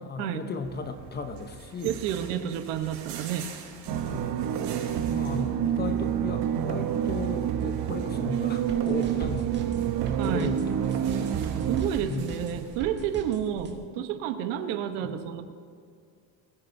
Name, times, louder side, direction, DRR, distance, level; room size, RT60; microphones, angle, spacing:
voice 1, 0.0-2.0 3.9-4.5 5.1-9.7 10.2-10.9 12.0-12.6 14.0-14.1 15.0-15.2, left 4 dB, 25° left, 8 dB, 0.9 m, -36 dB
sound 1, 0.6-13.4, right 7 dB, 70° right, 3.4 m, -47 dB
voice 2, 1.8-3.5 5.3-6.0 10.2-10.5 11.7-15.4, right 9 dB, 90° right, 8 dB, 1.1 m, -30 dB
sound 2, 3.9-11.9, right 9 dB, 50° right, 1.0 m, -28 dB
sound 3, 8.7-13.7, right 4 dB, 25° right, 1.9 m, -41 dB
21.0 x 10.0 x 2.7 m, 2.3 s
cardioid pair, 135°, 42 cm